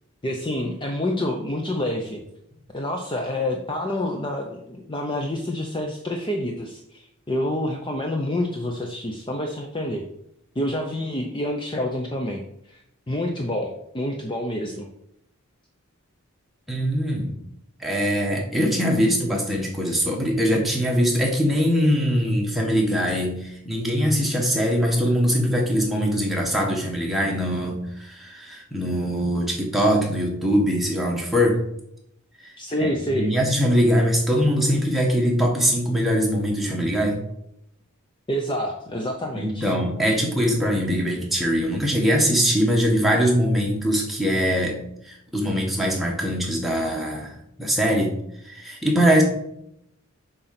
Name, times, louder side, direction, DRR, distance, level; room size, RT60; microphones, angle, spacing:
voice 1, 0.2-2.2 2.7-10.0 10.6-14.9 32.6-33.3 38.3-39.7, left 1 dB, 20° left, 2 dB, 0.7 m, -28 dB
voice 2, 16.7-17.4 17.8-31.6 32.4-32.5 32.8-37.2 39.3-44.8 45.0-48.1 48.4-49.2, equal, ahead, -2 dB, 1.5 m, -22 dB
8.3 x 3.9 x 5.9 m, 0.78 s
head